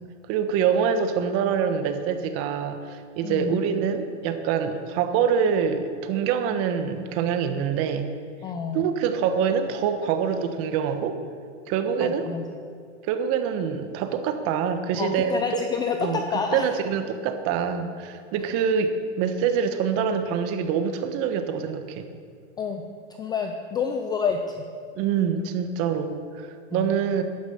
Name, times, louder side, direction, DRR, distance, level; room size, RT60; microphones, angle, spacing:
voice 1, 0.3-8.1 8.7-11.2 11.7-12.3 13.1-15.6 16.0-16.2 16.5-22.1 25.0-27.2, right 7 dB, 40° right, 8 dB, 1.3 m, -25 dB
voice 2, 3.2-3.6 8.4-8.9 12.0-12.4 15.0-16.7 22.6-22.8 23.2-24.6 26.7-26.9, left 6 dB, 10° left, 5 dB, 0.3 m, -28 dB
12.0 x 10.5 x 7.0 m, 2.2 s
supercardioid pair, 140°, 36 cm